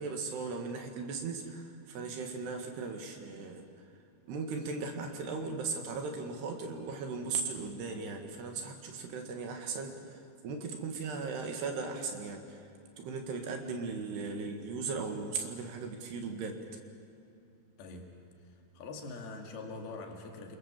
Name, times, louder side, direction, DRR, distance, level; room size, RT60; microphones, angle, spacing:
voice 1, 0.0-3.7 4.3-12.6 13.0-16.6, right 4 dB, 70° right, 4 dB, 3.9 m, -37 dB
voice 2, 17.8-20.6, left 3 dB, 65° left, 2 dB, 4.2 m, -44 dB
28.5 x 26.5 x 7.4 m, 2.6 s
omnidirectional pair, 5.0 m